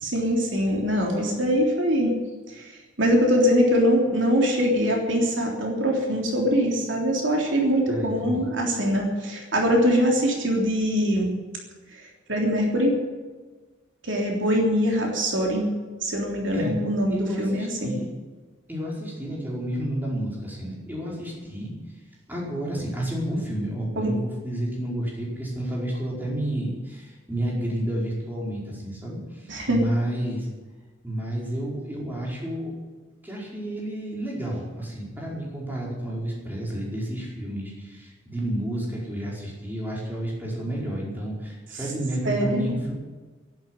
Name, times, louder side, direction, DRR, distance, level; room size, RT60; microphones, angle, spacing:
voice 1, 0.0-2.1 2.5-2.7 3.0-11.3 12.3-13.0 14.0-15.7 16.0-17.9 24.0-24.1 29.5-29.8 42.2-42.7, equal, 70° right, 0 dB, 3.4 m, -23 dB
voice 2, 7.9-8.4 16.5-16.8 17.1-18.1 18.7-21.7 22.3-30.5 31.0-32.7 33.2-42.9, right 1 dB, 10° right, -4 dB, 4.8 m, -30 dB
12.0 x 11.5 x 9.8 m, 1.3 s
head